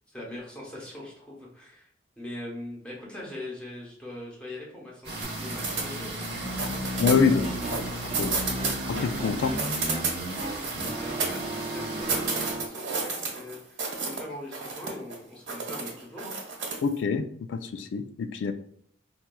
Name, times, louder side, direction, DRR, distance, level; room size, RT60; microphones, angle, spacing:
voice 1, 0.1-1.9 2.2-6.8 7.2-7.6 8.5-8.8 9.5-9.7 10.6-16.6, left 1 dB, 5° left, -4 dB, 0.9 m, -42 dB
sound 1, 5.0-12.6, right 1 dB, 65° right, 0.9 m, -34 dB
sound 2, 5.2-6.3 6.6-9.2 9.5-11.7 12.1-14.2 14.5-15.1 15.5-16.9, right 4 dB, 85° right, 1.2 m, -31 dB
voice 2, 7.0-7.4 8.2-8.3 8.9-9.5 16.8-18.5, left 5 dB, 80° left, 10 dB, 0.3 m, -25 dB
sound 3, 7.4-12.7, right 2 dB, 40° right, 0.4 m, -38 dB
4.2 x 2.3 x 2.2 m, 0.68 s
head